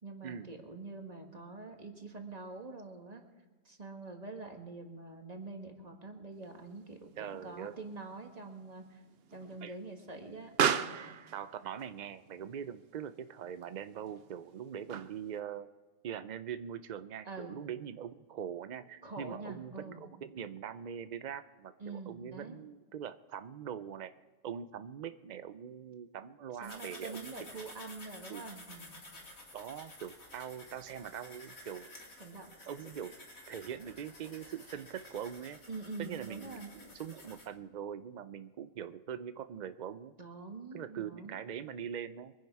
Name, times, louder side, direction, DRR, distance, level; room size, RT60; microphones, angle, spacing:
voice 1, 0.0-3.2 3.6-9.0 9.3-11.2 17.2-17.6 19.0-20.0 21.8-22.6 26.6-29.0 32.2-32.5 35.7-36.7 40.2-41.4, right 3 dB, 30° right, 3 dB, 1.8 m, -45 dB
Explosion, 6.4-15.4, right 8 dB, 55° right, 0.8 m, -39 dB
voice 2, 7.2-7.7 9.6-9.7 11.3-15.7 16.0-24.1 24.4-27.6 28.3-28.4 29.5-31.9 32.7-33.1 33.5-35.6 36.0-40.1 40.7-42.3, right 8 dB, 70° right, 12 dB, 0.4 m, -42 dB
sound 1, 26.6-37.5, left 1 dB, 85° left, 3.3 m, -52 dB
23.5 x 10.0 x 4.7 m, 1.4 s
omnidirectional pair, 1.4 m